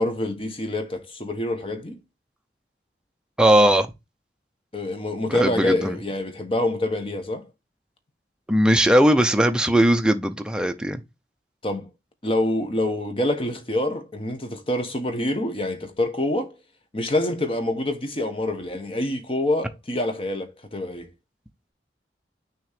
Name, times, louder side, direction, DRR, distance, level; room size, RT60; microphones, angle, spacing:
voice 1, 0.0-2.0 4.7-7.5 11.6-11.9 12.2-16.6 16.9-21.1, left 1 dB, 30° left, 1.2 m, -26 dB
voice 2, 3.4-3.9 5.3-6.0 8.5-11.0, right 1 dB, 5° right, 0.6 m, -19 dB
6.1 x 3.0 x 5.0 m
head